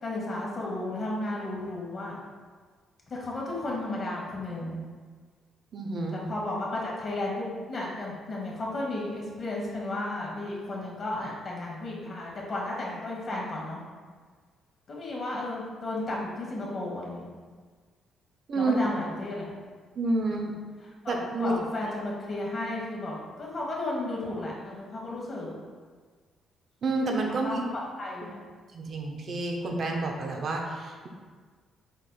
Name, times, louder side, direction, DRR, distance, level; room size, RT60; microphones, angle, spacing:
voice 1, 0.0-2.2 3.1-4.8 6.3-13.8 14.9-17.3 18.5-19.5 21.0-25.5 27.4-28.4, left 2 dB, 45° left, -3 dB, 1.3 m, -33 dB
voice 2, 5.7-6.2 18.5-18.9 20.0-20.5 21.1-21.5 26.8-27.6 28.7-31.1, right 2 dB, 55° right, 1 dB, 0.6 m, -29 dB
5.2 x 4.1 x 2.3 m, 1.5 s
cardioid pair, 90°, 0 cm